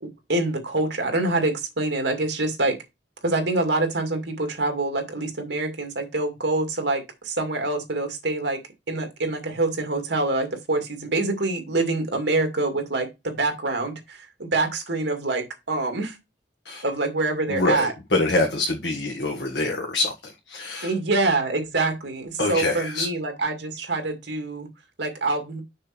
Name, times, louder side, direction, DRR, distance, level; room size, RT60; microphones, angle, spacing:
voice 1, 0.0-2.8 3.2-8.6 8.9-16.2 16.8-17.9 20.8-24.7 25.0-25.6, right 2 dB, 85° right, 2.3 m, -25 dB
voice 2, 17.5-20.9 22.4-23.1, left 2 dB, 75° left, 1.5 m, -25 dB
6.5 x 5.1 x 4.4 m
head